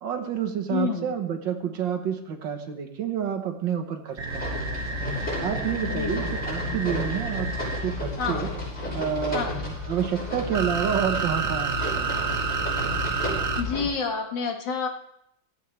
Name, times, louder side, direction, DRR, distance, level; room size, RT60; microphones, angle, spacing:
voice 1, 0.0-5.0 5.4-7.5 7.8-8.5 8.9-12.1, right 8 dB, 90° right, 5 dB, 1.9 m, -29 dB
voice 2, 0.7-1.1 5.8-6.2 8.2-8.5 9.3-9.5 13.6-14.9, left 5 dB, 80° left, 2 dB, 2.4 m, -28 dB
sound 1, 4.2-8.0 9.4-13.6, right 5 dB, 50° right, 1.0 m, -30 dB
sound 2, 4.3-13.9, left 2 dB, 40° left, 6.4 m, -32 dB
16.5 x 14.5 x 3.3 m, 0.77 s
omnidirectional pair, 1.9 m